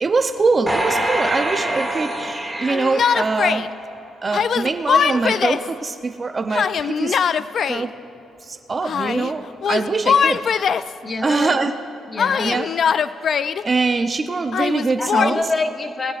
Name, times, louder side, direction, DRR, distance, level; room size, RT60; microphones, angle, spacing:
voice 1, 0.0-3.6 4.2-7.2 7.7-7.9 8.4-10.8 11.2-11.7 12.4-12.7 13.6-15.4, right 3 dB, 30° right, 8 dB, 0.6 m, -23 dB
sound 1, 0.7-4.1 4.6-4.7, right 1 dB, 5° right, 1.7 m, -25 dB
Yell, 2.7-3.7 4.3-5.7 6.5-7.9 8.8-9.3 9.6-10.9 12.2-13.6 14.5-15.4, left 7 dB, 55° left, 0.4 m, -21 dB
voice 2, 11.0-11.6 12.1-12.6 15.0-16.1, left 3 dB, 30° left, 5 dB, 1.2 m, -26 dB
20.5 x 15.5 x 2.5 m, 2.7 s
cardioid pair, 90°, 0 cm